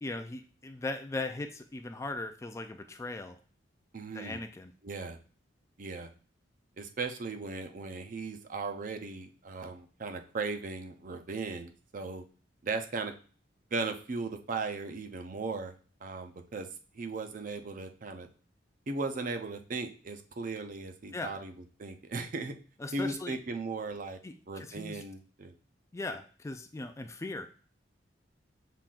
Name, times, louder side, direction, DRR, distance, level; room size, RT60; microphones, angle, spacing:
voice 1, 0.0-3.4 4.1-4.7 21.1-21.4 22.8-23.3 24.2-25.0 25.9-27.5, left 2 dB, 15° left, 7 dB, 0.3 m, -38 dB
voice 2, 3.9-4.4 4.8-5.2 5.8-6.1 6.8-12.2 12.6-13.1 13.7-15.7 16.0-16.7 16.9-18.3 18.9-21.5 21.8-22.6 22.9-24.2 24.5-25.5, right 3 dB, 45° right, 6 dB, 0.5 m, -37 dB
5.7 x 3.8 x 2.4 m, 0.39 s
head